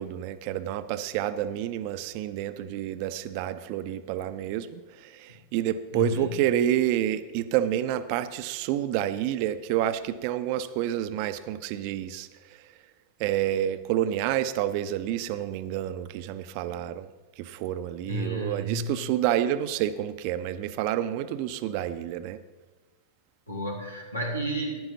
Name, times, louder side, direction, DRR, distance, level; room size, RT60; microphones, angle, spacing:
voice 1, 0.0-12.3 13.2-17.1 17.4-22.4, right 11 dB, 45° right, 12 dB, 0.6 m, -29 dB
voice 2, 5.9-6.3 18.0-19.0 23.5-24.8, right 1 dB, 90° left, -1 dB, 1.6 m, -31 dB
15.0 x 11.0 x 2.8 m, 1.3 s
figure-of-eight pair, 90°, 0 cm